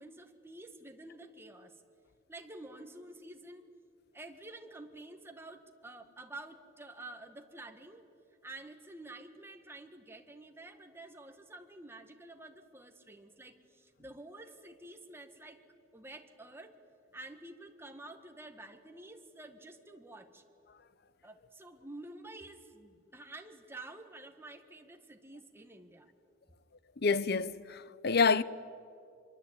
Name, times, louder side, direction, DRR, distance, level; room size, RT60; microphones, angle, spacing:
voice 1, 0.0-1.8 2.3-3.7 4.1-8.1 8.4-15.6 15.9-16.7 17.1-20.4 21.2-26.1, right 2 dB, 15° right, 1.8 m, -49 dB
voice 2, 27.0-28.4, left 4 dB, 55° left, 0.7 m, -27 dB
25.0 x 23.0 x 8.9 m
head